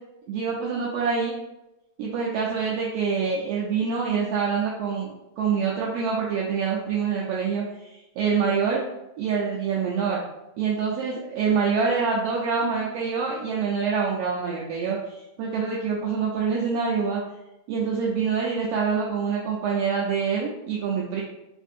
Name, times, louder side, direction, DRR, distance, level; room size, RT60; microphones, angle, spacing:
voice 1, 0.3-1.3 2.0-8.8 9.2-10.2 10.6-17.2 17.7-21.2, right 5 dB, 90° right, -4 dB, 1.4 m, -26 dB
4.4 x 2.6 x 2.4 m, 0.94 s
omnidirectional pair, 3.3 m